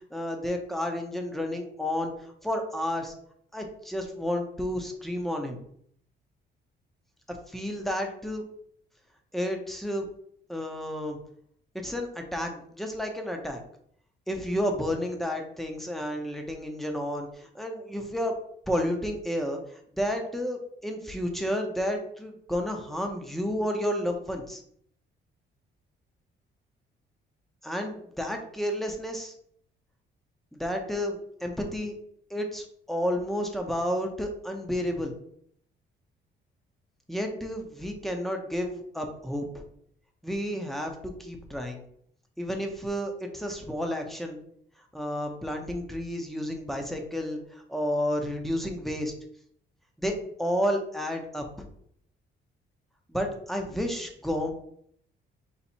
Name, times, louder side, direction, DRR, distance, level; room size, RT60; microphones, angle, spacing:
voice 1, 0.0-3.1 3.5-5.6 7.3-8.4 9.3-10.1 10.5-11.2 11.7-13.6 14.3-18.3 18.7-24.6 27.6-29.3 30.5-31.9 32.3-35.1 37.1-39.6 40.2-41.8 42.4-44.4 44.9-49.1 50.0-51.7 53.1-54.5, equal, ahead, 3 dB, 0.8 m, -31 dB
4.2 x 2.3 x 4.4 m, 0.66 s
cardioid pair, 90°, 20 cm